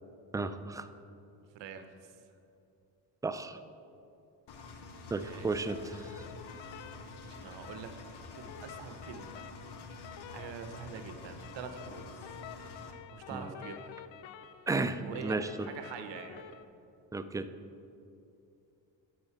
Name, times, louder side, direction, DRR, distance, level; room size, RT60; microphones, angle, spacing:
voice 1, 0.3-0.9 3.2-3.6 5.1-6.3 13.3-13.4 14.7-15.5 17.1-17.5, right 3 dB, 10° right, 10 dB, 0.3 m, -33 dB
voice 2, 1.5-2.1 5.2-5.5 7.3-7.9 8.3-9.5 10.3-12.4 13.1-14.0 15.0-16.4, right 6 dB, 70° right, 7 dB, 0.9 m, -45 dB
Engine, 4.5-12.9, left 3 dB, 60° left, 1.1 m, -48 dB
sound 1, 5.6-16.6, left 10 dB, 75° left, 0.6 m, -50 dB
9.4 x 6.5 x 4.7 m, 2.7 s
supercardioid pair, 70°, 45 cm